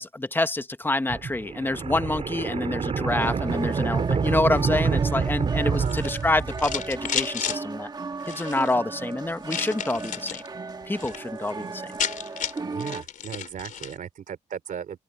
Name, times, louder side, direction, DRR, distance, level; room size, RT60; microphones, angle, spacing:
voice 1, 0.0-7.9 8.3-10.4 10.9-11.8, left 2 dB, 15° left, 1.1 m, -27 dB
sound 1, 1.1-6.9, right 5 dB, 50° right, 3.4 m, -27 dB
sound 2, 3.1-13.0, right 4 dB, 30° right, 2.0 m, -36 dB
voice 2, 5.6-6.1 12.6-15.0, right 8 dB, 80° right, 2.9 m, -36 dB
sound 3, 5.8-7.6 8.2-8.7 9.5-10.5 10.8-11.2 11.5-11.6 11.8-14.0, left 8 dB, 80° left, 3.7 m, -32 dB
open air
cardioid pair, 110°, 13 cm